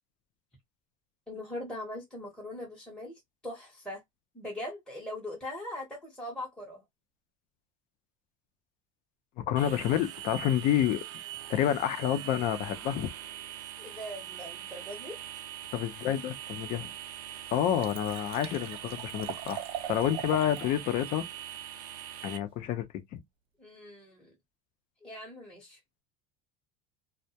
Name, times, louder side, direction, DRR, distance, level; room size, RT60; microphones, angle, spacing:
voice 1, 1.3-4.0 4.3-6.8 13.8-15.2 23.6-24.3 25.0-25.8, left 1 dB, 5° left, 0.8 m, -41 dB
voice 2, 9.4-11.0 11.5-13.1 15.7-16.9 17.5-19.6 19.9-21.2 22.2-22.9 23.1-23.2, left 10 dB, 50° left, 0.6 m, -29 dB
sound 1, 9.6-22.4, right 12 dB, 90° right, 0.5 m, -42 dB
Liquid, 17.2-17.3 17.5-20.7 21.1-21.2, right 10 dB, 35° right, 0.4 m, -41 dB
2.2 x 2.1 x 2.7 m
supercardioid pair, 140°, 17 cm